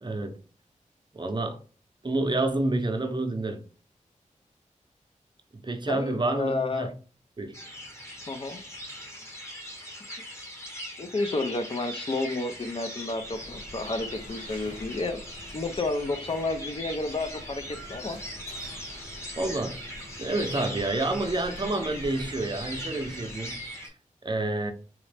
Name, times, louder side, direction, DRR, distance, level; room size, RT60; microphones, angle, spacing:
voice 1, 0.0-0.3 1.1-1.6 2.0-3.6 5.5-6.9 7.4-7.6 19.4-19.8 20.2-23.6 24.2-24.7, right 2 dB, 35° right, 0.6 m, -28 dB
voice 2, 5.9-6.9 8.3-8.6 11.0-15.2 15.5-18.2, left 2 dB, 45° left, 0.6 m, -31 dB
sound 1, 7.5-23.9, equal, 20° left, 1.1 m, -40 dB
sound 2, 13.1-23.8, left 1 dB, 80° left, 1.8 m, -46 dB
3.7 x 3.1 x 3.3 m
wide cardioid pair, 90°, 13 cm